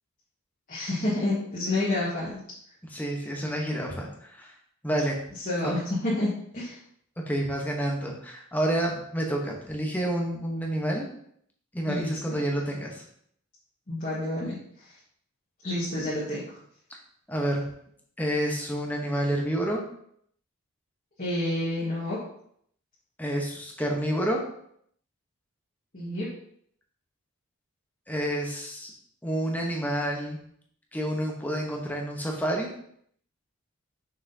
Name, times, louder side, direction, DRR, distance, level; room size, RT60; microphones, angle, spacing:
voice 1, 0.7-2.4 5.4-6.8 11.8-12.4 13.9-14.6 15.6-16.6 21.2-22.2 25.9-26.3, left 1 dB, 40° left, -8 dB, 1.6 m, -29 dB
voice 2, 2.9-4.5 4.8-5.2 5.6-5.7 7.3-11.1 11.7-13.0 17.3-17.6 18.2-19.8 23.2-24.4 28.1-28.9 29.2-30.4 30.9-32.7, right 1 dB, 10° left, 0 dB, 1.0 m, -29 dB
5.9 x 5.9 x 2.8 m, 0.66 s
head